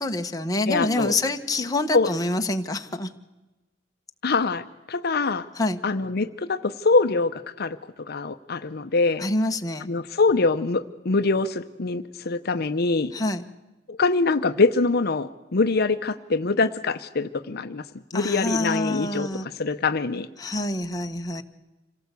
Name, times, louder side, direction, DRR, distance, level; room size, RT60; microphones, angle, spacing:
voice 1, 0.0-3.1 5.6-5.8 9.2-9.9 13.1-13.4 18.1-19.5 20.4-21.4, left 2 dB, 20° left, 5 dB, 1.2 m, -26 dB
voice 2, 0.7-1.2 1.9-2.1 4.2-5.5 5.8-9.2 9.9-13.1 13.9-17.8 18.1-19.3 19.6-20.3, left 3 dB, 55° left, 10 dB, 0.7 m, -24 dB
26.5 x 17.5 x 8.3 m, 1.1 s
head